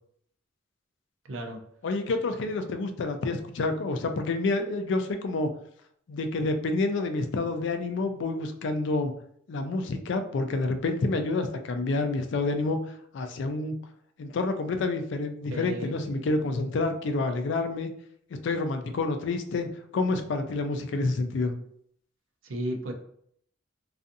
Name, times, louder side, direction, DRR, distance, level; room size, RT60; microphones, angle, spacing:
voice 1, 1.2-1.6 15.5-16.0 22.4-22.9, right 1 dB, 80° right, 3 dB, 0.5 m, -33 dB
voice 2, 1.8-5.5 6.1-9.1 9.5-12.8 13.1-13.7 14.2-17.9 18.3-21.5, left 3 dB, 60° left, 7 dB, 0.3 m, -28 dB
2.5 x 2.4 x 2.6 m, 0.66 s
head